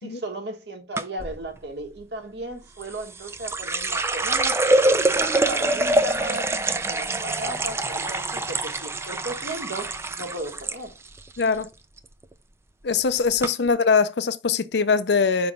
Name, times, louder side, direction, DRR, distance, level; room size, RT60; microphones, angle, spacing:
voice 1, 0.0-6.5 6.8-11.0 13.6-13.7, right 1 dB, 65° right, 1.4 m, -35 dB
sound 1, 1.0-1.3 2.8-10.8 11.1-11.6 12.0-12.3 13.0-13.1 13.4-13.5, right 2 dB, 15° right, 0.4 m, -25 dB
voice 2, 11.4-11.7 12.8-15.5, left 5 dB, 65° left, 0.5 m, -22 dB
5.6 x 4.0 x 5.1 m
head